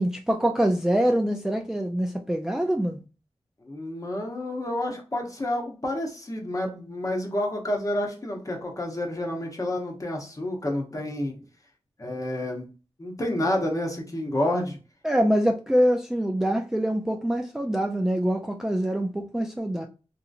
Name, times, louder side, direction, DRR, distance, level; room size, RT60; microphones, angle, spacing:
voice 1, 0.0-3.0 15.0-19.9, equal, 5° right, 3 dB, 0.3 m, -24 dB
voice 2, 3.6-11.4 12.0-12.7 13.0-14.8, left 1 dB, 30° left, 1 dB, 0.9 m, -29 dB
2.8 x 2.7 x 2.5 m, 0.33 s
wide cardioid pair, 70°, 11 cm